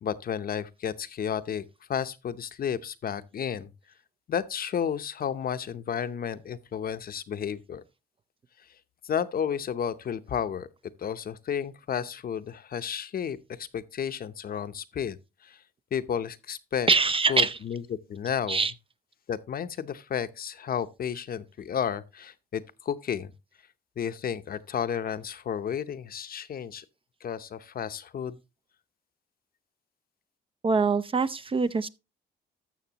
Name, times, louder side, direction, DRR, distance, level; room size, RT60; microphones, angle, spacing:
voice 1, 0.0-1.6 1.9-3.7 4.3-7.8 9.0-10.7 11.0-15.2 15.4-15.6 15.9-16.9 17.3-17.8 18.1-18.6 19.3-23.3 24.0-26.8 27.2-28.4, left 8 dB, 50° left, 0.7 m, -32 dB
voice 2, 16.9-17.6 18.5-18.7 30.6-31.9, right 4 dB, 30° right, 0.5 m, -24 dB
13.0 x 6.4 x 2.8 m
cardioid pair, 90°, 20 cm